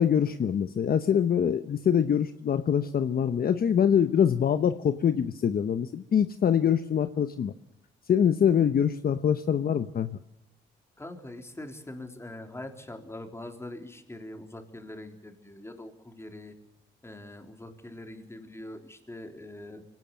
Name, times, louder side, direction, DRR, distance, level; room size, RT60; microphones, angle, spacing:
voice 1, 0.0-7.5 8.1-10.2, left 8 dB, 50° left, 11 dB, 0.9 m, -24 dB
voice 2, 11.0-16.6 17.0-19.8, left 1 dB, 15° left, 5 dB, 3.6 m, -43 dB
23.5 x 18.5 x 7.6 m, 0.82 s
cardioid pair, 90°, 20 cm